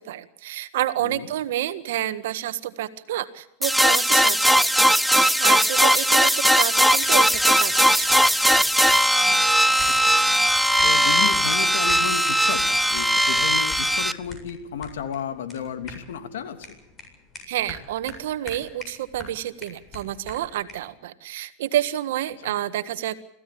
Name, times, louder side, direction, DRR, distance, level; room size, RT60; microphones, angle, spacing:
voice 1, 0.0-8.2 17.5-23.2, right 13 dB, 75° right, 12 dB, 1.6 m, -29 dB
sound 1, 3.6-14.1, equal, ahead, 0.8 m, -19 dB
sound 2, 7.0-20.9, left 3 dB, 25° left, 7.8 m, -44 dB
voice 2, 9.3-10.4 10.8-16.7 22.4-22.5, left 7 dB, 85° left, 8 dB, 3.1 m, -33 dB
26.0 x 16.0 x 8.6 m, 0.80 s
supercardioid pair, 115°, 0 cm